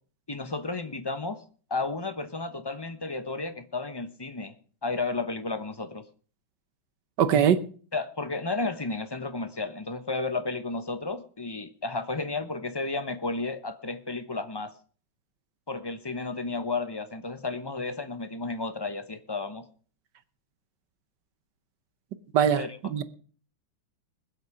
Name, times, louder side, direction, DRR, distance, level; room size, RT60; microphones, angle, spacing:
voice 1, 0.3-1.4 1.7-4.5 4.8-6.0 7.9-14.7 15.7-19.6 22.6-22.8, left 3 dB, 30° left, 0.4 m, -32 dB
voice 2, 7.2-7.6 22.3-23.0, right 8 dB, 65° right, 1.5 m, -22 dB
21.0 x 8.0 x 4.9 m
omnidirectional pair, 2.2 m